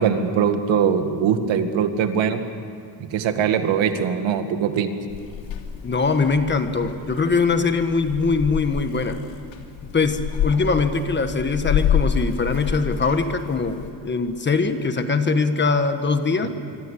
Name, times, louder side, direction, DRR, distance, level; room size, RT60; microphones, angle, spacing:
voice 1, 0.0-2.4 3.1-4.9 16.4-16.5, right 7 dB, 80° right, 7 dB, 2.2 m, -21 dB
Purr / Meow, 5.1-13.9, left 8 dB, 80° left, 3.0 m, -28 dB
voice 2, 5.8-9.2 9.9-16.5, left 4 dB, 25° left, 8 dB, 1.4 m, -22 dB
26.0 x 24.5 x 8.5 m, 2.3 s
cardioid pair, 155°, 45 cm